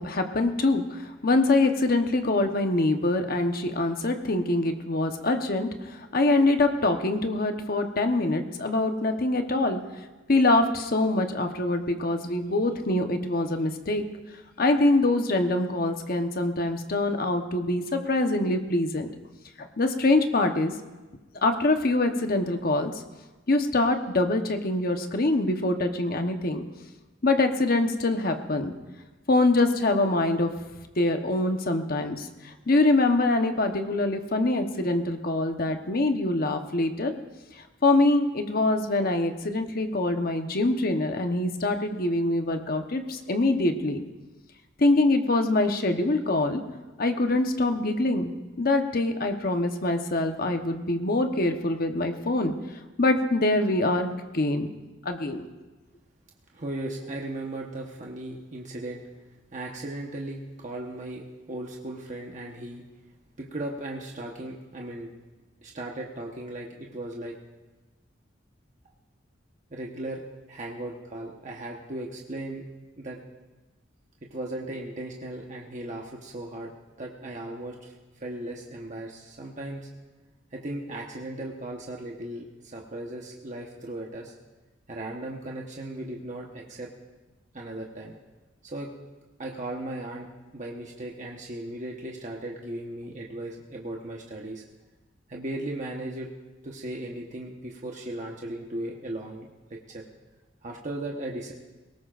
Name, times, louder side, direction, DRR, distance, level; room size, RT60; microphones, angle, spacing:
voice 1, 0.0-9.8 10.3-14.0 14.6-19.1 19.6-20.7 21.4-22.9 23.5-26.6 27.2-28.7 29.3-30.5 31.0-37.1 37.8-44.0 44.8-46.6 47.0-48.3 48.6-52.5 53.0-54.7 55.0-55.4, left 2 dB, 50° left, 6 dB, 1.1 m, -24 dB
voice 2, 56.5-59.1 59.5-62.8 63.4-65.1 65.6-67.4 69.7-70.2 70.5-72.6 73.0-73.2 74.2-76.7 77.0-79.9 80.5-84.3 84.9-86.9 87.5-88.2 88.6-88.9 89.4-90.3 90.5-94.6 95.3-96.3 96.6-100.0 100.6-101.5, right 1 dB, 40° right, -1 dB, 1.2 m, -37 dB
22.0 x 19.0 x 2.5 m, 1.2 s
head